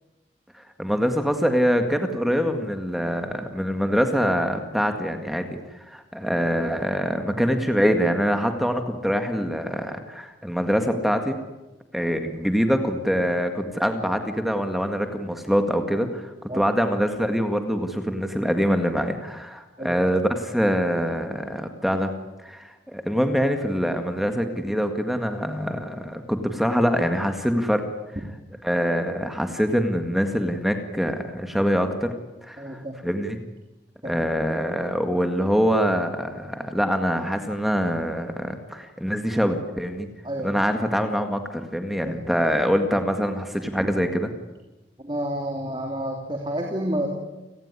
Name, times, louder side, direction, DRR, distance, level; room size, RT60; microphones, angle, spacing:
voice 1, 0.5-11.4 11.9-22.1 22.4-27.8 28.6-32.1 32.4-33.4 34.0-40.1 40.4-44.3, equal, ahead, 6 dB, 1.9 m, -24 dB
voice 2, 32.6-33.0 34.0-34.1 40.2-40.5 42.0-42.2 43.8-43.9 45.0-47.1, right 1 dB, 25° right, 2 dB, 3.0 m, -29 dB
29.5 x 18.5 x 9.9 m, 1.1 s
head